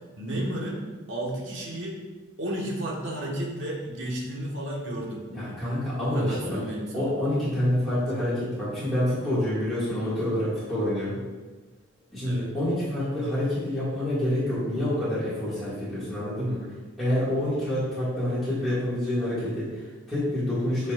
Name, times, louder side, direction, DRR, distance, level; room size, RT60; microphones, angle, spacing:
voice 1, 0.2-0.8 1.1-2.0 2.4-5.2 6.0-7.1 12.3-12.5, right 1 dB, 70° right, -2 dB, 1.5 m, -32 dB
voice 2, 5.3-6.6 6.9-11.2 12.1-16.6 17.0-20.9, left 1 dB, ahead, -13 dB, 2.0 m, -27 dB
9.0 x 5.1 x 2.5 m, 1.3 s
head